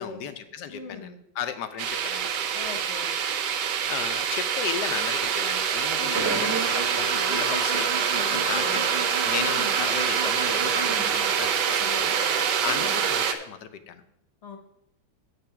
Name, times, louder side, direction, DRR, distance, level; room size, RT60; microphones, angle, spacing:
voice 1, 0.0-2.3 3.9-14.0, left 8 dB, 70° left, 10 dB, 1.1 m, -35 dB
voice 2, 0.7-1.2 2.5-3.1 6.0-6.3 8.1-8.9 9.3-9.7 11.8-13.0 14.4-14.6, left 4 dB, 45° left, 5 dB, 1.1 m, -40 dB
Electric Kettle, 1.8-13.3, right 8 dB, 70° right, 1.3 m, -26 dB
sound 1, 6.1-11.7, right 4 dB, 40° right, 1.4 m, -31 dB
7.9 x 6.8 x 5.8 m, 0.78 s
omnidirectional pair, 2.1 m